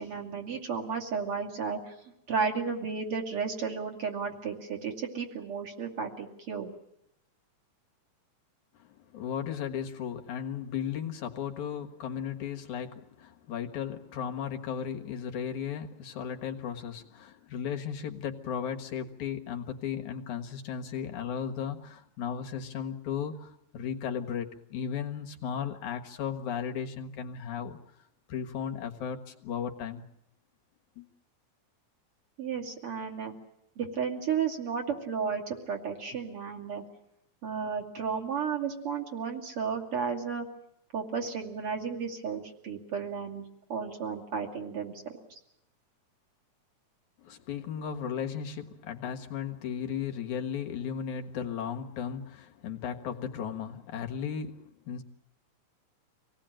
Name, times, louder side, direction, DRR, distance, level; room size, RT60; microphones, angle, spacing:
voice 1, 0.0-1.9 2.3-6.7 32.4-33.3 33.8-36.8 37.4-40.4 40.9-43.4 43.7-45.2, right 6 dB, 50° right, 1 dB, 3.4 m, -33 dB
voice 2, 8.8-27.8 28.3-30.0 31.0-31.1 47.2-55.0, left 8 dB, 85° left, 4 dB, 2.9 m, -35 dB
25.5 x 18.5 x 9.0 m, 0.77 s
omnidirectional pair, 3.3 m